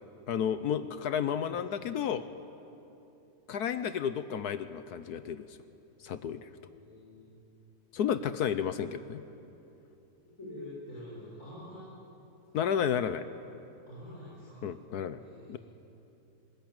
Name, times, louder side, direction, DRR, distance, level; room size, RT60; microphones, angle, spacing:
voice 1, 0.3-2.2 3.5-5.6 6.0-6.5 7.9-9.2 12.5-13.3 14.6-15.2 15.5-15.6, left 8 dB, 65° left, 12 dB, 1.2 m, -32 dB
voice 2, 1.4-1.9 6.7-7.3 10.4-11.8 13.5-14.6 15.1-15.6, left 1 dB, 40° left, -9 dB, 7.1 m, -47 dB
21.5 x 19.5 x 8.9 m, 2.8 s
omnidirectional pair, 2.0 m